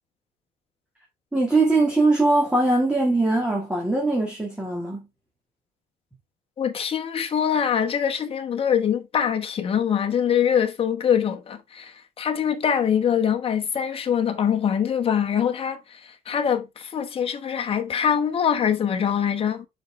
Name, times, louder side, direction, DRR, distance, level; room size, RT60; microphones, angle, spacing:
voice 1, 1.3-5.1, right 2 dB, 5° right, 1.7 m, -21 dB
voice 2, 6.6-19.7, left 8 dB, 40° left, 1.1 m, -24 dB
5.5 x 5.3 x 3.3 m
cardioid pair, 140°, 15 cm